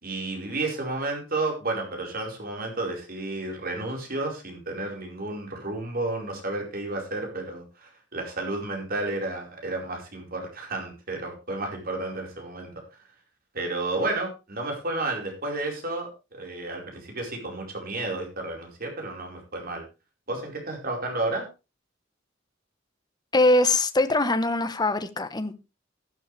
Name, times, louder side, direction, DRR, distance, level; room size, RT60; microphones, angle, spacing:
voice 1, 0.0-12.7 13.5-19.8 20.3-21.4, right 2 dB, 50° right, 4.7 m, -32 dB
voice 2, 23.3-25.5, left 2 dB, 20° left, 1.1 m, -22 dB
12.5 x 12.0 x 3.3 m
head